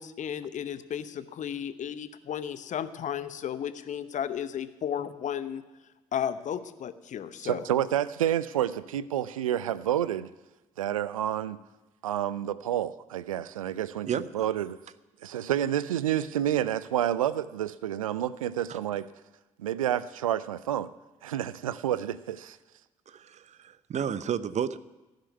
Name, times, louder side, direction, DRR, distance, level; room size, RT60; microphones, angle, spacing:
voice 1, 0.0-5.6 6.1-7.7, left 9 dB, 45° left, 13 dB, 0.8 m, -34 dB
voice 2, 7.4-10.3 10.8-11.6 12.0-14.8 15.2-19.1 19.6-20.9 21.2-22.6, right 11 dB, 80° right, 18 dB, 0.4 m, -29 dB
voice 3, 23.1-24.8, right 8 dB, 40° right, 17 dB, 0.7 m, -31 dB
16.0 x 6.6 x 9.5 m, 1.1 s
figure-of-eight pair, 40°, 17 cm